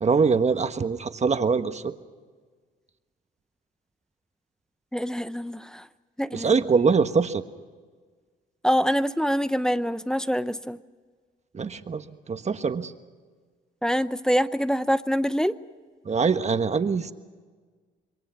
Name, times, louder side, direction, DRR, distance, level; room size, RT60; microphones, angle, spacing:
voice 1, 0.0-1.9 6.3-7.4 11.5-12.0 12.3-12.9 16.0-17.1, right 5 dB, 35° right, 9 dB, 1.4 m, -23 dB
voice 2, 4.9-5.9 6.2-6.6 8.6-10.8 13.8-15.5, equal, 5° left, 13 dB, 0.8 m, -25 dB
27.0 x 22.5 x 5.8 m, 1.5 s
cardioid pair, 90°, 20 cm